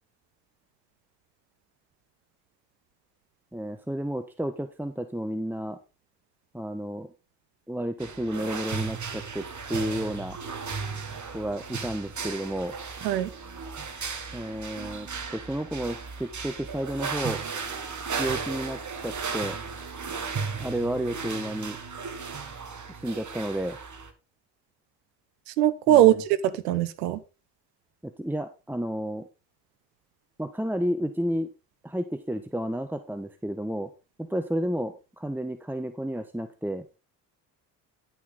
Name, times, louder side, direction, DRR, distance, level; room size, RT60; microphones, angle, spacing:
voice 1, 3.5-5.8 6.5-7.1 7.7-10.4 11.3-12.8 14.3-17.4 18.2-19.6 20.6-21.8 23.0-23.8 25.9-26.2 28.0-29.3 30.4-31.5 31.8-33.9 34.2-36.8, equal, 5° right, 9 dB, 1.1 m, -31 dB
sound 1, 8.0-24.1, right 5 dB, 40° right, 1.9 m, -35 dB
voice 2, 25.6-27.2, right 12 dB, 85° right, 15 dB, 0.9 m, -21 dB
11.0 x 6.4 x 3.9 m, 0.29 s
hypercardioid pair, 50°, 47 cm